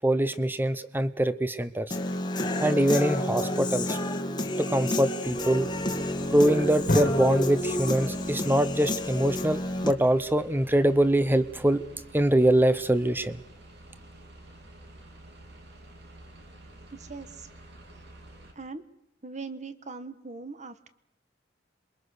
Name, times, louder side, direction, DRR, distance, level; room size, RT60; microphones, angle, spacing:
voice 1, 0.0-2.0 2.6-4.0 4.6-5.7 6.3-11.8 12.1-13.4, right 1 dB, 10° right, 13 dB, 1.0 m, -24 dB
Human voice / Guitar, 1.9-9.9, left 1 dB, 25° left, 1.5 m, -30 dB
sound 1, 5.2-18.5, right 1 dB, 60° right, 3.4 m, -49 dB
Drum, 6.9-9.6, left 1 dB, 45° left, 1.9 m, -33 dB
voice 2, 16.9-17.5 18.5-18.8 19.2-20.9, right 4 dB, 40° right, 12 dB, 1.4 m, -40 dB
27.0 x 23.0 x 6.6 m, 0.78 s
head